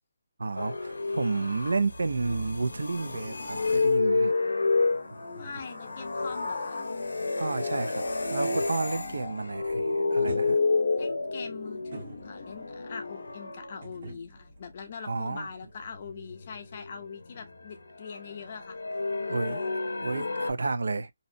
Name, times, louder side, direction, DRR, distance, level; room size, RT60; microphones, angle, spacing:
voice 1, 0.4-4.3 7.4-10.6 15.1-15.5 19.3-19.6 20.0-21.1, right 3 dB, 80° right, 0.3 m, -31 dB
sound 1, 0.6-13.8 15.9-17.7 18.1-20.5, left 3 dB, 90° left, 0.6 m, -30 dB
sound 2, 4.3-9.1 9.4-9.8 10.2-12.8 13.8-15.7 16.0-16.2, right 2 dB, 45° right, 0.7 m, -47 dB
voice 2, 5.3-6.9 11.0-18.8, left 5 dB, 35° left, 0.5 m, -42 dB
2.6 x 2.0 x 2.5 m
hypercardioid pair, 170°, 0 cm